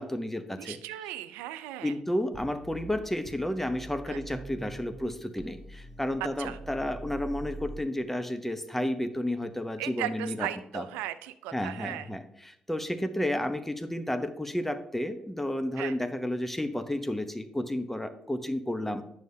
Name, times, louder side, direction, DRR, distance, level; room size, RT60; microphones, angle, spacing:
voice 1, 0.0-0.8 1.8-10.5 10.7-10.8 11.5-19.0, left 1 dB, 10° left, 9 dB, 0.9 m, -32 dB
voice 2, 0.6-2.0 4.1-4.2 6.4-6.6 9.8-12.1 15.8-15.9, right 13 dB, 85° right, 12 dB, 0.5 m, -37 dB
sound 1, 2.3-5.1 5.4-7.8, right 2 dB, 10° right, 1.2 m, -44 dB
9.2 x 6.5 x 2.7 m, 0.77 s
hypercardioid pair, 45°, 3 cm